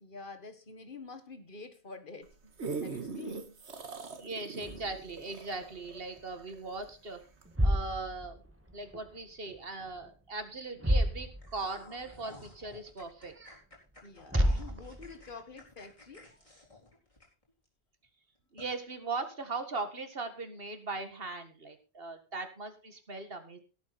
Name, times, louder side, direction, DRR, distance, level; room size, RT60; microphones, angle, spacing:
voice 1, 0.0-2.6 2.8-3.6 14.0-16.3, left 3 dB, 50° left, 9 dB, 1.8 m, -47 dB
sound 1, 2.2-6.9 7.4-7.5, right 4 dB, 85° right, 1.8 m, -41 dB
voice 2, 4.2-7.2 7.6-8.4 8.7-13.6 14.3-14.6 18.5-23.6, right 3 dB, 60° right, 8 dB, 2.1 m, -39 dB
sound 2, 4.6-6.2 6.6-6.9 7.3-9.2 9.5-10.2 10.4-10.5 10.8-11.8 12.1-12.2 12.8-12.9 13.9-14.0 14.3-15.3, equal, 10° right, 1.6 m, -32 dB
sound 3, 11.4-17.7 18.0-18.1 18.6-18.7, left 2 dB, 30° left, 4.4 m, -54 dB
17.5 x 8.6 x 4.2 m, 0.32 s
omnidirectional pair, 1.1 m